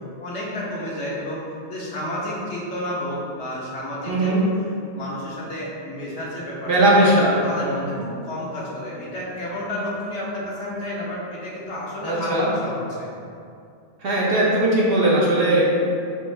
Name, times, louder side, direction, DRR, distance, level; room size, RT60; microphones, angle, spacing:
voice 1, 0.2-1.4 1.7-4.3 4.9-6.9 7.4-13.1, left 1 dB, 75° left, -6 dB, 1.3 m, -31 dB
voice 2, 4.1-4.4 6.7-7.3 7.6-7.9 12.0-12.5 14.0-15.6, right 1 dB, 60° right, -5 dB, 1.1 m, -19 dB
6.1 x 2.6 x 3.2 m, 2.5 s
omnidirectional pair, 1.1 m